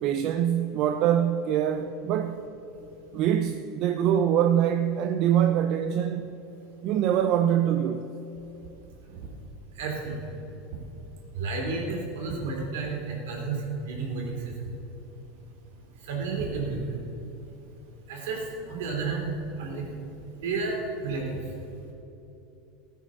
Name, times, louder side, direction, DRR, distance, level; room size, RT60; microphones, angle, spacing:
voice 1, 0.0-2.4 3.1-6.4 6.8-8.0, right 10 dB, 55° right, 0.6 m, -24 dB
voice 2, 9.8-10.1 11.3-14.4 16.1-16.8 18.1-18.4 18.7-19.3 19.6-19.8 20.4-21.4, right 4 dB, 75° right, 3.1 m, -31 dB
14.0 x 6.5 x 6.5 m
hypercardioid pair, 100°, 0 cm